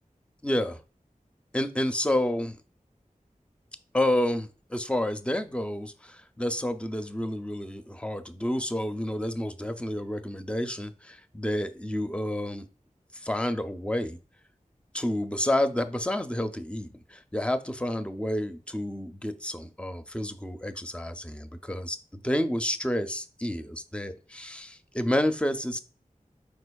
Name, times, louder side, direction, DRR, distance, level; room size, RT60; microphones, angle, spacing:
voice 1, 0.4-0.8 1.5-2.6 3.9-12.7 13.2-14.2 14.9-22.0 22.2-25.8, left 1 dB, 10° left, 9 dB, 0.4 m, -29 dB
4.8 x 4.3 x 2.3 m, 0.34 s
wide cardioid pair, 60°, 14 cm